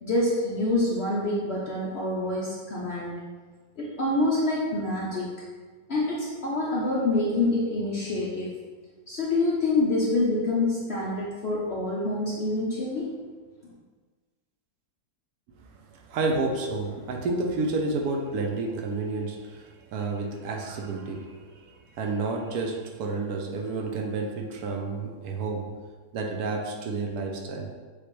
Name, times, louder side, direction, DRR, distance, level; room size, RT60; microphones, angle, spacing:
voice 1, 0.0-3.2 3.8-5.3 5.9-8.6 9.1-13.1 13.6-13.7, left 2 dB, 60° left, -5 dB, 0.6 m, -26 dB
voice 2, 15.6-25.7 26.1-27.7, right 3 dB, 75° right, 2 dB, 1.1 m, -30 dB
6.7 x 2.3 x 3.2 m, 1.5 s
omnidirectional pair, 1.7 m